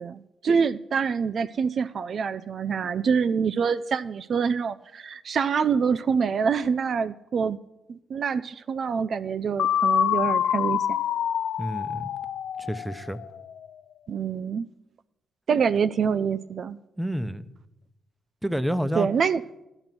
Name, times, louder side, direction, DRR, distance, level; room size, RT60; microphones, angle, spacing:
voice 1, 0.0-7.6 7.9-11.0 14.1-14.7 15.5-16.8 19.0-19.4, right 6 dB, 60° right, 12 dB, 0.4 m, -26 dB
sound 1, 9.6-13.5, left 9 dB, 75° left, 0.5 m, -26 dB
voice 2, 11.6-12.1 12.6-13.2 17.0-17.5 18.4-19.1, equal, 5° right, 12 dB, 0.8 m, -29 dB
13.0 x 10.5 x 6.0 m, 0.95 s
cardioid pair, 75°, 0 cm